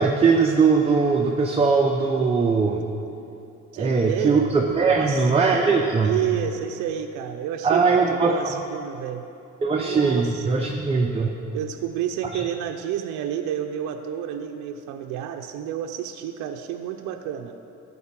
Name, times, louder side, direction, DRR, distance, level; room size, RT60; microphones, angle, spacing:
voice 1, 0.0-2.8 3.8-6.2 7.6-8.6 9.6-11.4 12.3-12.4, right 4 dB, 20° right, 1 dB, 0.6 m, -20 dB
voice 2, 3.7-4.4 4.9-5.3 6.0-9.3 9.8-10.6 11.5-17.5, right 10 dB, 80° right, 4 dB, 0.6 m, -30 dB
12.5 x 4.2 x 7.4 m, 2.8 s
cardioid pair, 120°, 29 cm